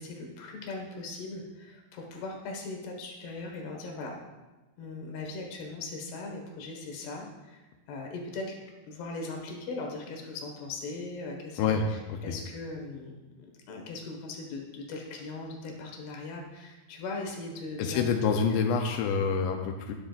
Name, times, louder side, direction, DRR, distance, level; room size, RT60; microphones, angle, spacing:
voice 1, 0.0-4.2 4.8-8.5 8.8-18.2, left 3 dB, 65° left, 1 dB, 3.3 m, -39 dB
voice 2, 17.8-19.9, left 6 dB, 85° left, 4 dB, 2.5 m, -27 dB
20.0 x 7.4 x 2.5 m, 1.1 s
omnidirectional pair, 5.7 m